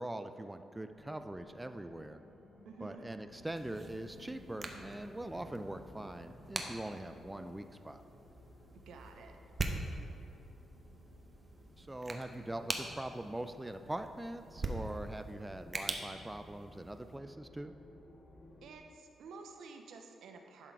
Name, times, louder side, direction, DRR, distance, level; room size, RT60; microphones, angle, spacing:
voice 1, 0.0-2.2 2.8-8.0 11.8-17.7, right 1 dB, 15° right, 8 dB, 0.3 m, -42 dB
sound 1, 0.9-18.8, left 1 dB, 65° left, 1.1 m, -57 dB
voice 2, 2.6-3.1 8.7-9.4 18.6-20.7, right 4 dB, 80° right, 4 dB, 0.7 m, -51 dB
sound 2, 3.5-17.2, right 2 dB, 35° right, 0.7 m, -44 dB
11.0 x 3.8 x 4.7 m, 2.6 s
cardioid pair, 75°, 0 cm